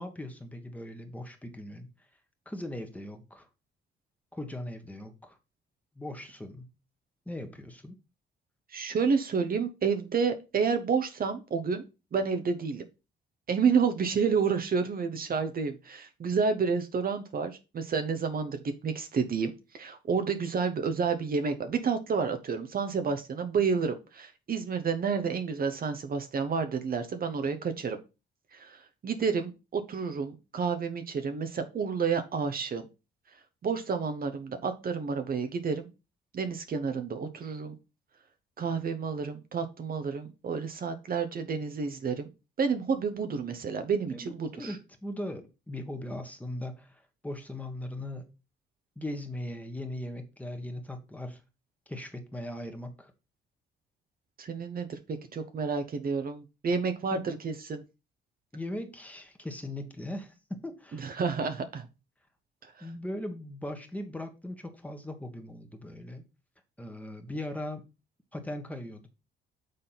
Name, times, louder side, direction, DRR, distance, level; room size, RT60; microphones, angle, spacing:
voice 1, 0.0-1.9 2.4-3.5 4.3-5.4 5.9-6.7 7.2-8.0 44.1-48.3 48.9-51.4 51.9-53.1 57.1-57.2 58.5-61.0 62.8-66.2 66.8-67.8 68.3-69.1, left 1 dB, 5° left, 1.5 m, -39 dB
voice 2, 8.7-11.8 12.1-12.8 13.5-28.0 28.5-32.9 33.6-35.9 36.3-37.7 38.6-42.3 42.6-44.8 54.4-57.8 60.9-61.9 62.6-62.9, right 5 dB, 45° right, 1.0 m, -30 dB
6.7 x 3.7 x 5.7 m
cardioid pair, 90°, 20 cm